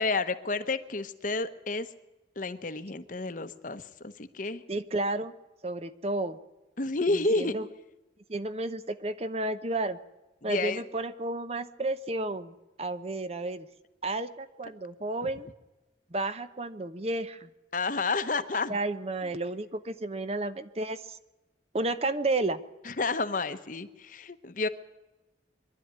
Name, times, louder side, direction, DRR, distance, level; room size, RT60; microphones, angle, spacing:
voice 1, 0.0-1.9 2.4-4.6 6.8-7.5 10.5-10.8 17.7-18.8 22.8-24.7, left 3 dB, 45° left, 11 dB, 1.0 m, -30 dB
voice 2, 4.7-5.3 5.6-6.4 7.4-7.7 8.3-10.0 10.4-13.7 14.0-15.5 16.1-17.5 18.7-21.2 21.7-22.6, right 2 dB, 35° right, 12 dB, 0.8 m, -32 dB
23.0 x 12.0 x 9.5 m, 1.1 s
head